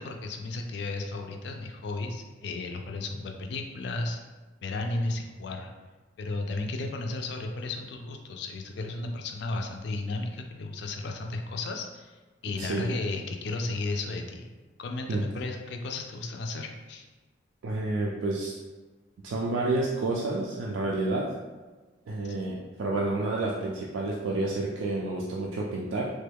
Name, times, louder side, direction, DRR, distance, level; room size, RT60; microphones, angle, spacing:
voice 1, 0.0-4.2 4.6-5.7 6.2-14.5 14.8-17.1 22.2-22.3, left 2 dB, 60° left, 3 dB, 0.3 m, -34 dB
voice 2, 17.6-18.6 19.2-21.3 22.1-26.1, right 2 dB, 85° right, -3 dB, 0.4 m, -29 dB
3.1 x 2.2 x 3.4 m, 1.3 s
head